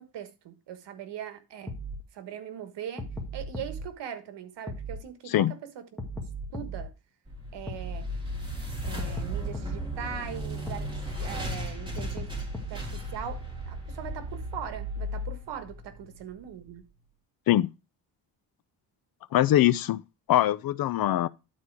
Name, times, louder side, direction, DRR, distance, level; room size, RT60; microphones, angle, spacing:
voice 1, 0.0-1.7 2.1-3.1 3.3-5.8 6.5-6.9 7.5-8.1 8.8-12.3 12.7-16.8, right 9 dB, 80° right, 1.4 m, -40 dB
sound 1, 1.7-2.0 3.0-3.8 4.7-5.0 6.0-6.9 7.7-8.0 9.0-9.9 10.7-11.0 12.0-12.9, right 1 dB, 5° left, 1.7 m, -36 dB
sound 2, 7.3-16.4, equal, 10° right, 3.2 m, -36 dB
voice 2, 19.3-20.0 20.3-21.3, left 13 dB, 55° left, 0.5 m, -22 dB
11.5 x 4.3 x 4.7 m
cardioid pair, 145°, 42 cm